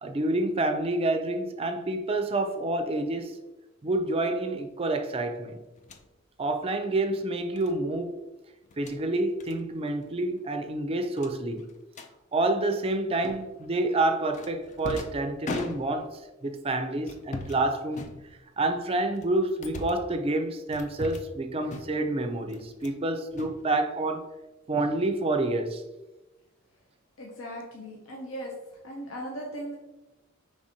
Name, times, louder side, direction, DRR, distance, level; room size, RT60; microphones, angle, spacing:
voice 1, 0.0-3.3 3.8-5.6 6.4-8.1 8.8-11.6 12.3-18.0 18.6-24.3 24.7-25.8, right 2 dB, 30° right, 0.4 m, -28 dB
sound 1, 5.8-6.1 7.6-7.8 8.6-9.0 9.4-9.6 9.9-10.1 10.4-10.5 11.2-12.1 13.2-13.7 14.3-16.2 17.0-17.6 17.9-18.6 19.1-20.1 20.7-21.4 21.7-22.1 22.5-23.0 23.3-24.2, left 3 dB, 35° left, 0.4 m, -40 dB
voice 2, 27.2-28.5 28.8-29.8, equal, 85° left, 0.7 m, -38 dB
5.0 x 3.3 x 2.7 m
head